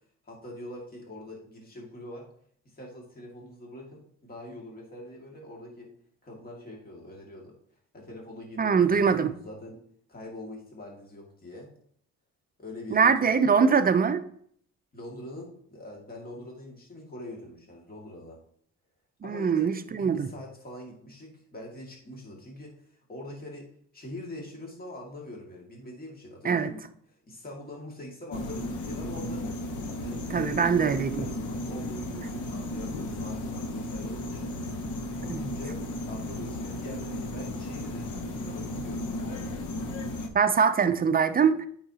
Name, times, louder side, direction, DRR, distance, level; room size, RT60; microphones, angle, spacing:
voice 1, 0.2-2.3 2.6-5.9 6.2-7.5 7.9-9.8 10.1-11.7 12.6-14.0 14.9-18.4 19.2-23.7 23.9-29.4 30.0-34.5 35.2-39.4, left 1 dB, 30° left, -1 dB, 2.2 m, -43 dB
voice 2, 8.6-9.3 12.9-14.2 19.2-20.3 26.4-26.7 30.3-31.2 35.3-35.5 40.3-41.7, right 6 dB, 30° right, 10 dB, 0.5 m, -23 dB
sound 1, 28.3-40.3, left 1 dB, 80° left, 1.0 m, -34 dB
8.7 x 5.6 x 2.9 m, 0.63 s
cardioid pair, 90°, 30 cm